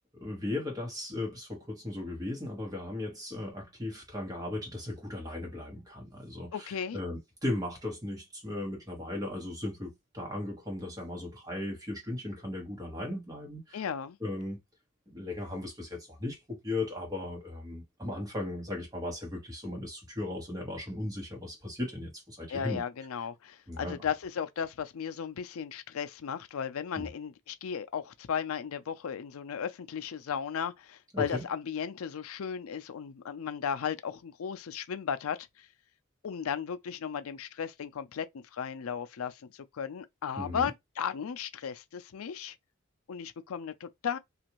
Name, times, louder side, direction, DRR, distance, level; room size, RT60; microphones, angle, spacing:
voice 1, 0.1-13.8 14.2-14.6 15.1-22.8 23.7-24.0 26.9-27.1 31.1-31.4 40.4-40.7, left 1 dB, 15° right, 1.3 m, -37 dB
voice 2, 6.5-7.0 13.7-14.2 22.5-35.4 36.2-38.3 38.5-42.5 43.1-44.2, left 7 dB, 80° left, 0.4 m, -35 dB
2.6 x 2.5 x 3.0 m
head